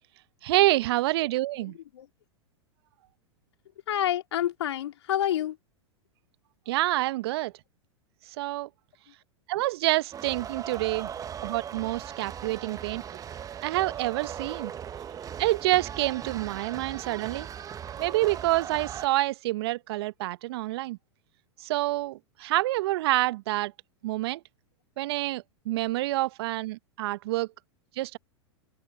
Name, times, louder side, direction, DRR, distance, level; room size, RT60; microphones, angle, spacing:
voice 1, 0.4-1.7 6.7-7.5 8.4-8.7 9.5-11.1 11.4-13.0 13.6-14.7 15.4-17.5 18.0-21.0 21.6-23.7 24.0-24.4 25.0-27.5 28.0-28.2, right 18 dB, 60° right, 0.9 m, -27 dB
voice 2, 1.6-2.1 3.9-5.6, left 11 dB, 70° left, 3.7 m, -28 dB
sound 1, 10.1-19.1, right 8 dB, 25° right, 1.2 m, -38 dB
hypercardioid pair, 100°, 15 cm